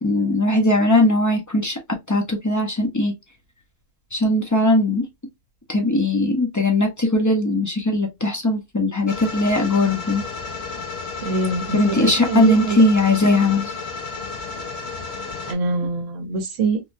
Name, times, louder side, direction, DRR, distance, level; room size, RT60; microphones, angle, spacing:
voice 1, 0.0-1.8 2.1-3.1 4.1-5.0 5.7-10.2 11.7-13.7, left 2 dB, 30° left, 0.3 m, -19 dB
sound 1, 9.1-15.5, left 4 dB, 60° left, 0.9 m, -32 dB
voice 2, 11.2-12.9 15.5-16.8, right 3 dB, 70° right, 1.1 m, -24 dB
3.4 x 2.2 x 2.5 m
omnidirectional pair, 1.4 m